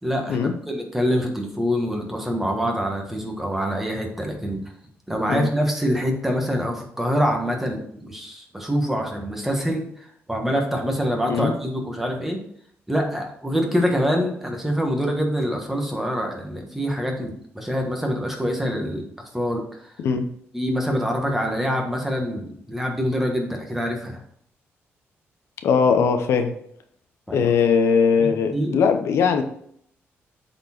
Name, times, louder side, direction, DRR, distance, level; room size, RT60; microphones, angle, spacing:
voice 1, 0.0-4.6 5.1-12.4 12.9-19.1 19.3-19.9 20.5-24.2 27.3-27.5 28.2-28.8, equal, 5° right, 2 dB, 1.4 m, -25 dB
voice 2, 25.6-26.5 27.3-29.4, left 6 dB, 75° left, 7 dB, 0.8 m, -20 dB
7.9 x 4.4 x 4.3 m, 0.66 s
cardioid pair, 140°, 5 cm